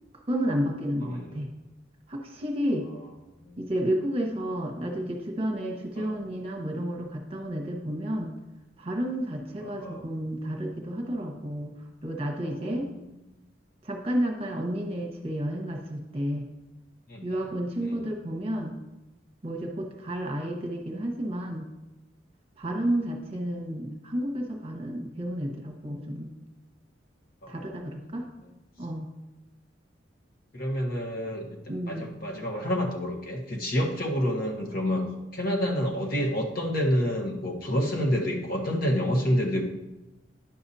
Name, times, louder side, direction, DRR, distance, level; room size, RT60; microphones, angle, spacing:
voice 1, 0.3-1.5 2.1-2.9 3.6-8.3 8.8-11.7 12.0-12.9 13.8-16.4 17.2-18.7 19.4-21.7 22.6-26.3 27.5-28.2 28.8-29.1 31.7-32.2, equal, 30° right, 0 dB, 1.2 m, -31 dB
voice 2, 9.6-10.1 12.4-13.0 17.1-17.5 17.8-18.1 20.1-20.2 22.8-22.9 27.4-27.8 30.5-31.6 31.9-39.6, equal, 50° left, 0 dB, 1.3 m, -29 dB
10.5 x 6.8 x 2.8 m, 1.0 s
head